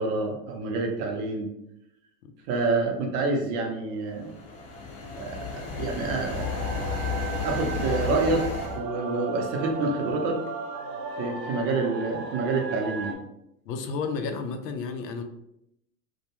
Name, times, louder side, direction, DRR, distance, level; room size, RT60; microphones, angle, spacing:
voice 1, 0.0-1.5 2.5-4.3 5.2-7.0 7.4-8.4 8.7-10.4 11.2-13.2, right 3 dB, 45° right, 1 dB, 0.7 m, -28 dB
sound 1, 4.1-8.8, left 5 dB, 30° left, 0.5 m, -32 dB
sound 2, 6.3-13.1, right 4 dB, 85° right, 0.6 m, -35 dB
voice 2, 13.7-15.2, left 5 dB, 80° left, 7 dB, 0.6 m, -32 dB
2.2 x 2.1 x 2.8 m, 0.80 s
hypercardioid pair, 110°, 48 cm